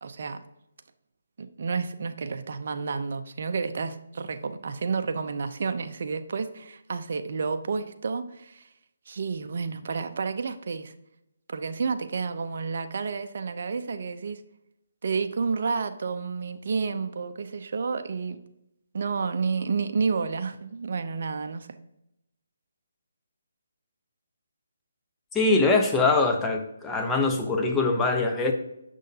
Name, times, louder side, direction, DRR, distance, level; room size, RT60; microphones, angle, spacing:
voice 1, 0.0-0.4 1.4-8.7 9.1-10.9 11.5-14.4 15.0-18.4 18.9-21.7, right 5 dB, 55° right, 8 dB, 0.6 m, -30 dB
voice 2, 25.3-28.5, left 3 dB, 10° left, 2 dB, 0.8 m, -23 dB
6.4 x 6.2 x 2.8 m, 0.83 s
hypercardioid pair, 155°, 0 cm